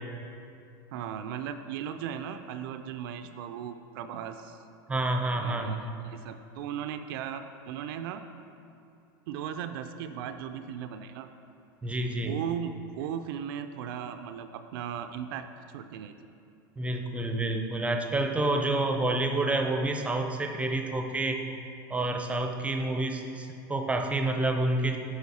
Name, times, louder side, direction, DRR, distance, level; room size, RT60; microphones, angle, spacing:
voice 1, 0.9-4.6 5.4-8.2 9.3-11.3 12.2-15.5 15.7-16.3, right 8 dB, 70° right, 8 dB, 0.4 m, -37 dB
voice 2, 4.9-5.9 11.8-12.3 16.8-21.4 21.9-25.0, right 2 dB, 10° right, 5 dB, 0.5 m, -28 dB
8.0 x 4.9 x 4.2 m, 2.5 s
supercardioid pair, 120°, 12 cm